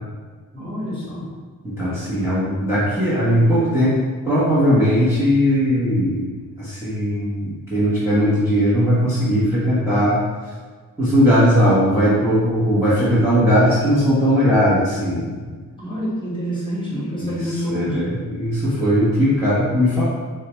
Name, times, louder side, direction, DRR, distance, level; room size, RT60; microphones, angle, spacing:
voice 1, 0.5-1.3 15.8-18.1, equal, 15° left, -7 dB, 1.5 m, -27 dB
voice 2, 1.6-4.0 4.3-6.3 6.6-10.2 11.0-15.4 17.2-20.0, equal, 5° right, -11 dB, 1.1 m, -18 dB
4.6 x 2.3 x 3.0 m, 1.5 s
cardioid pair, 75°, 37 cm